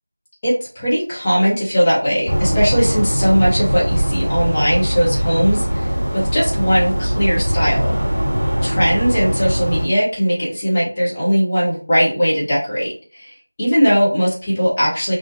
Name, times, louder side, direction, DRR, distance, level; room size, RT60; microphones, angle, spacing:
voice 1, 0.4-5.8 6.1-7.9 8.6-13.3 13.6-15.2, equal, 10° left, -9 dB, 0.6 m, -19 dB
sound 1, 2.3-9.8, equal, 10° right, 1.1 m, -20 dB
3.8 x 2.0 x 2.9 m, 0.39 s
figure-of-eight pair, 175°, 0 cm